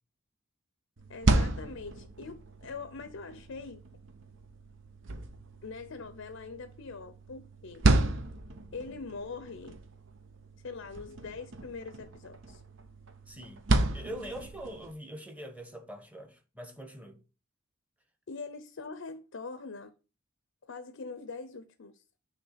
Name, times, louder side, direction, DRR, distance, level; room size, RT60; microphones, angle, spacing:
sound 1, 1.0-14.9, right 2 dB, 70° right, 0.8 m, -33 dB
voice 1, 1.1-3.8 5.6-7.9 8.7-9.8 10.6-12.6 18.3-19.9 20.7-21.9, left 4 dB, 75° left, 0.6 m, -43 dB
voice 2, 13.3-13.6 13.9-17.2, right 1 dB, 5° right, 1.1 m, -43 dB
6.5 x 3.3 x 5.7 m
head